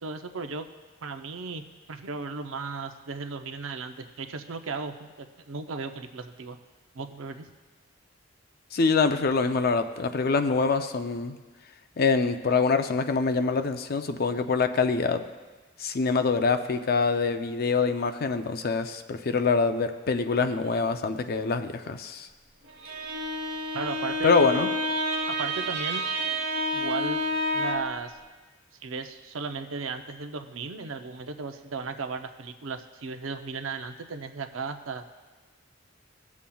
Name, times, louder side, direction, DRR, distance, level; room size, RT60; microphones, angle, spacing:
voice 1, 0.0-0.7 1.0-1.6 1.9-6.6 6.9-7.5 23.7-24.3 25.3-26.0 26.7-27.2 27.5-28.2 28.8-35.0, right 4 dB, 85° right, 7 dB, 0.6 m, -35 dB
voice 2, 8.7-11.4 12.0-15.2 15.8-22.3 24.2-24.7, left 4 dB, 50° left, 8 dB, 0.5 m, -25 dB
Bowed string instrument, 22.7-28.0, equal, 55° right, 1.0 m, -29 dB
17.5 x 7.2 x 2.3 m, 1.3 s
head